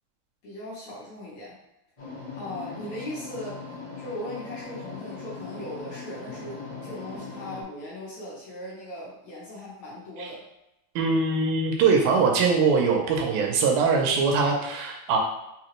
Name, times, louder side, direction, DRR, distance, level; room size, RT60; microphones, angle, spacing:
voice 1, 0.4-1.6 2.4-3.6 4.0-10.4, left 1 dB, 60° left, -7 dB, 2.0 m, -38 dB
sound 1, 2.0-7.6, left 4 dB, 40° left, 1.6 m, -39 dB
voice 2, 11.0-15.2, right 4 dB, 80° right, 1 dB, 2.3 m, -22 dB
5.8 x 2.6 x 3.0 m, 0.88 s
omnidirectional pair, 4.3 m